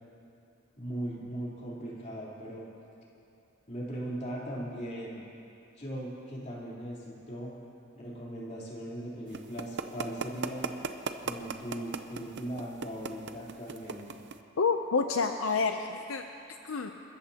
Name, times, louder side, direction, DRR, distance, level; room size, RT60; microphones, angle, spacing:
voice 1, 0.8-2.7 3.7-5.2 5.8-7.5 7.9-10.7 11.2-14.2, right 1 dB, 35° left, -6 dB, 3.7 m, -39 dB
sound 1, 9.3-14.4, right 5 dB, 60° right, 0.7 m, -36 dB
voice 2, 14.6-16.2 16.6-16.9, left 4 dB, 75° left, 5 dB, 0.6 m, -28 dB
29.0 x 14.0 x 2.9 m, 2.7 s
head